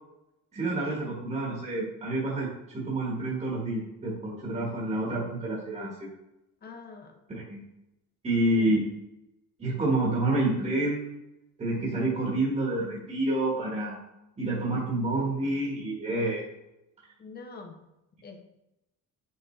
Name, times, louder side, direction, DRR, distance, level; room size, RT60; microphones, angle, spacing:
voice 1, 0.5-2.5 2.7-6.1 7.3-7.6 8.2-8.9 9.6-11.1 11.6-14.0 14.4-16.4, right 2 dB, 20° right, -4 dB, 1.4 m, -28 dB
voice 2, 6.6-7.2 8.6-8.8 17.2-17.8 18.2-18.4, left 4 dB, 30° left, 4 dB, 0.9 m, -44 dB
5.7 x 5.5 x 3.2 m, 0.91 s
cardioid pair, 170°, 33 cm